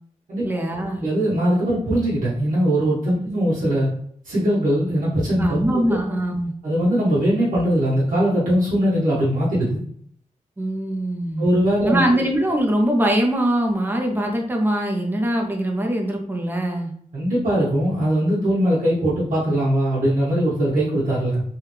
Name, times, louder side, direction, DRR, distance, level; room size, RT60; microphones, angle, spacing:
voice 1, 0.4-1.1 3.2-3.3 5.4-6.5 10.6-11.5 11.8-16.9, right 1 dB, 15° right, 1 dB, 0.6 m, -22 dB
voice 2, 1.0-3.9 4.2-5.6 5.9-6.0 6.6-9.8 11.4-12.0 17.1-21.4, equal, 90° right, -9 dB, 1.3 m, -20 dB
3.4 x 2.3 x 3.1 m, 0.63 s
wide cardioid pair, 150°, 13 cm